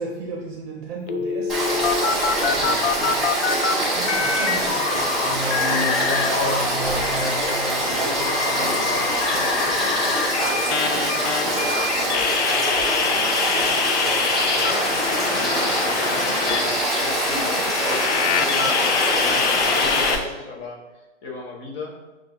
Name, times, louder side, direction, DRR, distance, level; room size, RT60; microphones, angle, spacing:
voice 1, 0.0-3.3 3.9-5.1, right 4 dB, 45° right, 0 dB, 0.8 m, -35 dB
sound 1, 1.1-3.7 4.1-6.6 7.0-20.2, left 6 dB, 60° left, 0.5 m, -25 dB
Frog / Stream, 1.5-20.1, right 1 dB, ahead, 0.5 m, -24 dB
voice 2, 2.5-2.9 5.7-8.4 8.9-22.0, left 3 dB, 20° left, -1 dB, 0.8 m, -35 dB
sound 2, 5.2-9.5 10.1-10.3, left 1 dB, 80° left, 1.3 m, -32 dB
7.3 x 2.5 x 2.9 m, 1.1 s
hypercardioid pair, 155°, 38 cm